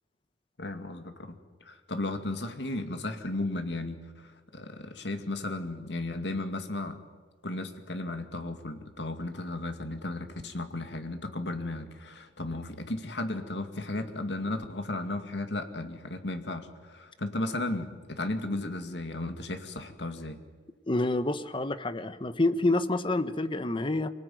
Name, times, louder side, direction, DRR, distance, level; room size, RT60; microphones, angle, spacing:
voice 1, 0.6-7.0 7.4-20.4, left 2 dB, 75° left, 7 dB, 2.3 m, -35 dB
voice 2, 20.9-24.1, left 2 dB, 30° left, 12 dB, 1.0 m, -28 dB
26.0 x 19.0 x 9.4 m, 1.5 s
head